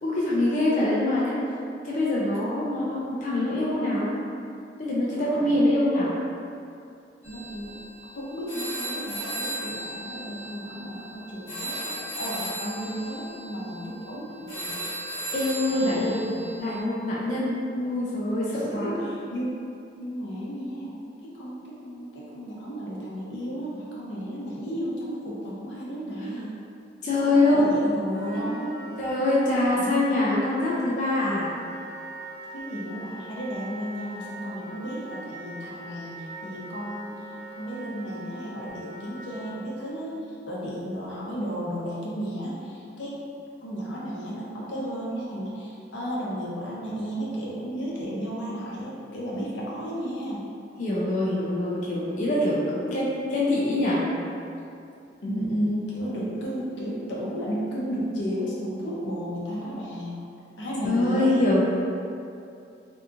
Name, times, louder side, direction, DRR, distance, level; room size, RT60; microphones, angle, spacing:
voice 1, 0.0-1.4 1.8-4.1 4.8-6.1 15.3-16.1 16.6-19.0 27.0-27.8 28.3-28.4 29.0-31.5 50.8-54.0 60.8-61.6, left 1 dB, 40° left, -7 dB, 0.3 m, -24 dB
voice 2, 5.3-5.8 7.3-7.8 8.1-14.8 15.7-16.5 18.5-19.6 20.0-21.0 21.3-26.5 27.2-28.9 29.7-30.4 32.5-37.2 37.6-40.1 40.5-43.2 43.6-50.4 55.2-60.2 60.6-61.3, equal, 85° left, -6 dB, 0.6 m, -33 dB
sound 1, 7.2-16.8, right 1 dB, 20° left, 0.9 m, -36 dB
Wind instrument woodwind instrument, 28.1-39.6, right 2 dB, 65° right, 0.4 m, -42 dB
2.7 x 2.4 x 2.4 m, 2.6 s
head